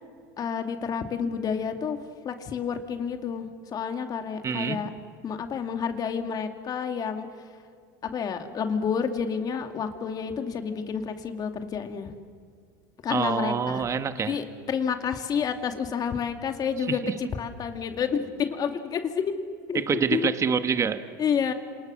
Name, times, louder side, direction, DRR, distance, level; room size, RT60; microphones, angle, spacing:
voice 1, 0.4-4.9 5.2-7.3 8.0-12.1 13.0-13.8 14.1-19.2 19.7-20.3 21.2-21.5, left 7 dB, 40° left, 6 dB, 2.4 m, -29 dB
voice 2, 4.4-4.8 13.1-14.4 16.9-17.1 19.7-21.0, right 6 dB, 30° right, 10 dB, 1.3 m, -26 dB
27.5 x 27.0 x 6.4 m, 2.2 s
supercardioid pair, 100°, 10 cm